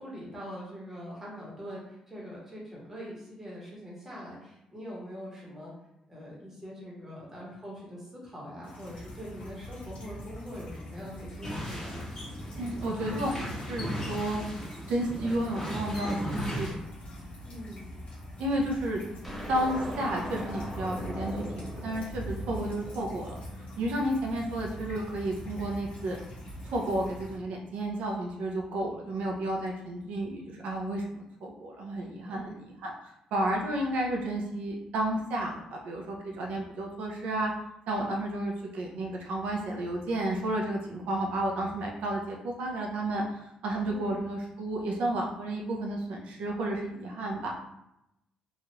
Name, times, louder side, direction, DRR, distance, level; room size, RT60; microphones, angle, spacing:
voice 1, 0.0-5.7 6.1-12.0 17.4-17.9 32.2-32.7 43.9-44.2, equal, 15° right, -5 dB, 1.0 m, -43 dB
sound 1, 8.6-27.4, equal, 60° left, 1.2 m, -43 dB
sound 2, 11.4-16.7, equal, 20° left, 1.1 m, -36 dB
voice 2, 12.6-14.4 14.9-16.8 18.4-19.0 19.5-23.4 23.8-26.2 26.6-31.1 31.4-32.5 32.8-37.5 37.9-47.5, right 1 dB, 90° right, 0 dB, 0.5 m, -32 dB
sound 3, 19.2-23.6, equal, ahead, 0.7 m, -40 dB
3.0 x 2.3 x 2.8 m, 0.84 s
cardioid pair, 140°, 2 cm